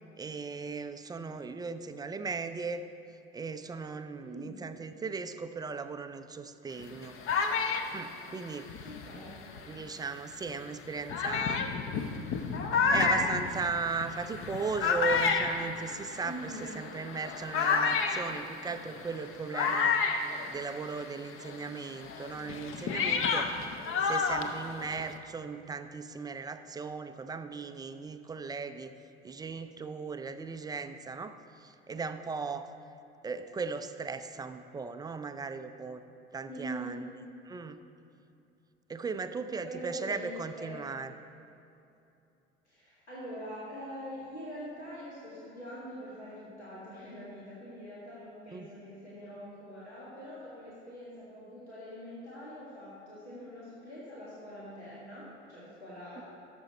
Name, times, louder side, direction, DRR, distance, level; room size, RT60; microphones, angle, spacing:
voice 1, 0.2-2.8 3.3-7.2 7.9-8.7 9.7-11.6 12.9-20.0 20.5-23.5 24.0-28.9 29.2-32.7 33.2-36.0 36.3-37.1 37.5-37.8 38.9-41.1 48.5-48.7, right 4 dB, 10° right, 9 dB, 0.4 m, -37 dB
voice 2, 4.2-4.6 8.8-9.4 16.2-16.7 36.5-37.0 39.6-40.8 42.7-56.2, equal, 85° left, -8 dB, 1.9 m, -44 dB
sound 1, 6.8-9.8 10.5-10.6 11.1-21.1 21.4-25.2, left 5 dB, 40° left, 0.8 m, -31 dB
12.5 x 6.9 x 4.2 m, 2.7 s
figure-of-eight pair, 65°, 32 cm